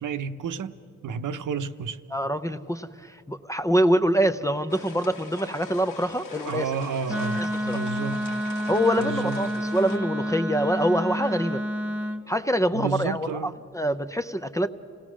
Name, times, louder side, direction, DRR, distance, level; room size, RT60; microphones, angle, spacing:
voice 1, 0.0-0.7 1.0-2.0 6.4-8.2 9.0-9.4 12.7-13.6, right 5 dB, 75° right, 0.8 m, -31 dB
voice 2, 2.1-6.9 7.3-7.8 8.7-11.6 12.3-14.7, equal, 10° left, 0.4 m, -25 dB
sound 1, 4.7-10.0, left 4 dB, 85° left, 1.9 m, -43 dB
Wind instrument woodwind instrument, 7.1-12.2, equal, 5° right, 0.8 m, -29 dB
27.5 x 18.0 x 6.2 m
wide cardioid pair, 160°, 31 cm